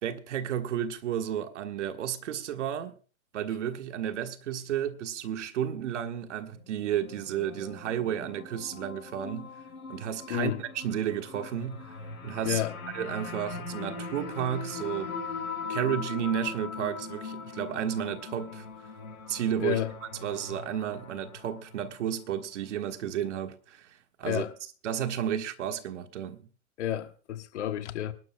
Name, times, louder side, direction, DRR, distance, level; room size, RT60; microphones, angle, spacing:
voice 1, 0.0-2.9 3.3-9.6 9.9-12.6 12.9-15.2 15.7-18.7 19.3-19.8 20.2-24.4 24.8-26.4, right 9 dB, 55° right, 1.5 m, -32 dB
sound 1, 6.5-21.9, left 4 dB, 80° left, 5.8 m, -40 dB
voice 2, 10.3-10.6 12.4-12.7 19.6-19.9 24.2-24.5 26.8-28.1, left 11 dB, 55° left, 1.4 m, -30 dB
25.0 x 12.0 x 2.2 m
hypercardioid pair, 130°, 43 cm